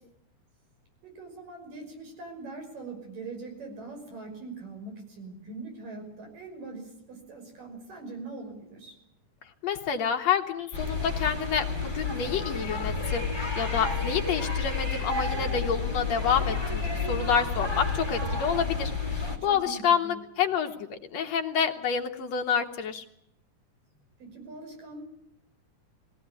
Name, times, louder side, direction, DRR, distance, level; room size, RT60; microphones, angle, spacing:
voice 1, 1.0-9.0 19.4-20.2 24.2-25.0, right 3 dB, 85° right, 3 dB, 7.4 m, -42 dB
voice 2, 9.6-13.3 13.6-23.0, left 7 dB, 60° left, 5 dB, 2.3 m, -28 dB
sound 1, 10.7-19.4, left 4 dB, 5° right, 3.2 m, -30 dB
21.0 x 17.5 x 9.7 m, 0.74 s
omnidirectional pair, 3.7 m